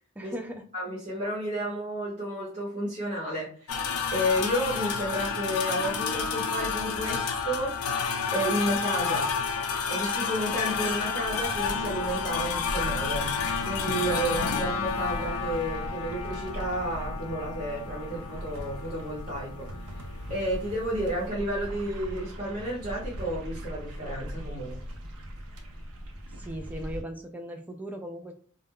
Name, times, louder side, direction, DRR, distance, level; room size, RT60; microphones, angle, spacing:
voice 1, 0.2-0.6 26.4-28.3, right 1 dB, 5° right, 4 dB, 0.3 m, -38 dB
voice 2, 0.7-3.7 4.1-7.7 8.3-9.3 9.9-13.3 13.6-19.7 20.3-24.8, equal, 40° right, -6 dB, 1.0 m, -31 dB
sound 1, 3.7-21.3, left 6 dB, 90° left, 0.4 m, -31 dB
sound 2, 11.2-27.0, equal, 85° right, 0.5 m, -40 dB
2.3 x 2.1 x 3.5 m, 0.43 s
head